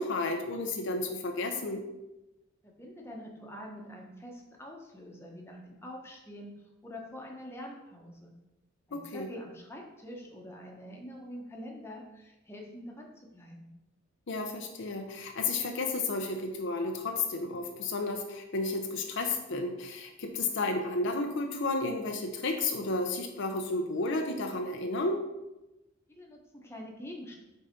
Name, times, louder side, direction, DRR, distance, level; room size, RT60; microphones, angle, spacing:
voice 1, 0.0-1.8 8.9-9.3 14.3-25.2, left 2 dB, 65° left, 4 dB, 0.7 m, -32 dB
voice 2, 2.6-6.5 6.8-8.3 8.9-13.1 13.3-13.7 26.1-27.4, equal, 10° left, -1 dB, 1.1 m, -45 dB
5.3 x 4.1 x 5.2 m, 0.97 s
head